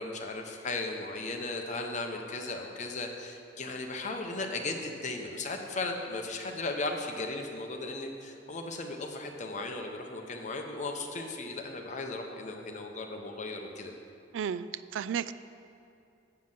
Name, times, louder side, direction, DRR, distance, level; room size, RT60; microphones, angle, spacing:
voice 1, 0.0-13.9, left 2 dB, 40° left, 3 dB, 0.9 m, -36 dB
voice 2, 14.3-15.3, right 8 dB, 85° right, 15 dB, 0.3 m, -33 dB
7.5 x 5.9 x 7.3 m, 2.7 s
head